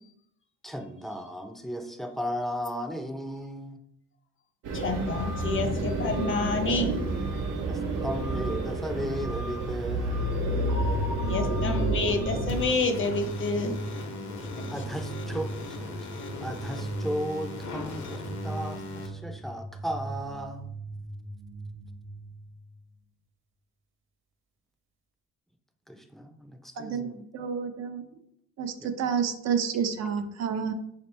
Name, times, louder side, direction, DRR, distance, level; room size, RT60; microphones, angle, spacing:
voice 1, 0.6-3.8 5.3-5.5 7.7-10.2 14.7-16.1 16.4-20.7 25.9-27.2 28.8-28.9, equal, ahead, 5 dB, 0.5 m, -35 dB
sound 1, 4.6-12.6, right 1 dB, 85° right, 1.1 m, -29 dB
voice 2, 4.7-7.0 11.2-13.7 14.5-14.7, left 3 dB, 40° left, 5 dB, 0.7 m, -28 dB
sound 2, 10.7-22.6, right 2 dB, 45° right, 0.9 m, -38 dB
sound 3, 12.5-19.1, left 3 dB, 70° left, 1.0 m, -39 dB
voice 3, 26.8-28.0 28.6-30.7, right 7 dB, 60° right, 6 dB, 0.6 m, -29 dB
5.0 x 2.9 x 3.3 m, 0.76 s
cardioid pair, 90°, 30 cm